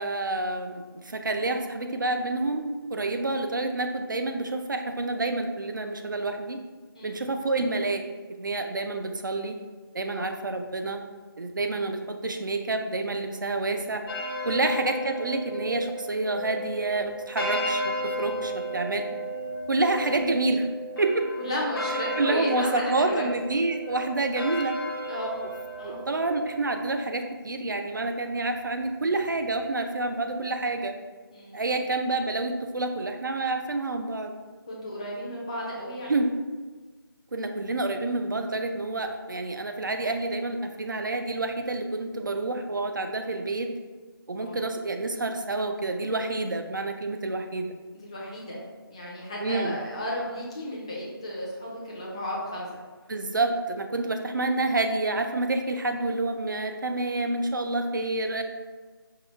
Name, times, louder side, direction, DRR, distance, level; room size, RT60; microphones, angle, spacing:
voice 1, 0.0-6.6 7.0-8.0 8.3-9.6 9.9-11.0 11.4-14.0 14.4-19.0 19.7-20.7 21.0-21.3 22.2-24.8 25.8-30.9 31.5-34.3 36.1-36.3 37.3-43.7 44.3-47.7 49.4-49.8 53.1-58.4, right 2 dB, 55° right, 5 dB, 0.5 m, -28 dB
sound 1, 14.1-26.6, equal, 70° left, 1.0 m, -34 dB
voice 2, 21.4-23.3 25.1-25.4 25.8-26.0 31.3-31.8 34.7-36.2 44.4-44.6 47.9-48.6 48.9-52.7 54.0-54.1, left 1 dB, 15° left, -5 dB, 0.5 m, -34 dB
4.7 x 2.3 x 4.3 m, 1.4 s
figure-of-eight pair, 165°, 12 cm